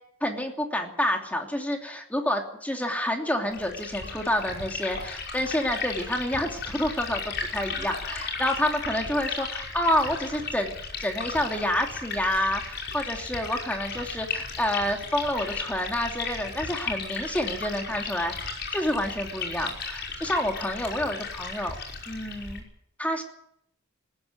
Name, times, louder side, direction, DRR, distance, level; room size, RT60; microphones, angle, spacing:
voice 1, 0.2-10.7 11.0-21.7 22.1-22.6 23.0-23.2, left 1 dB, 10° left, 2 dB, 2.9 m, -28 dB
Liquid, 3.5-22.6, left 4 dB, 55° left, 5.6 m, -35 dB
20.0 x 15.5 x 9.4 m, 0.74 s
head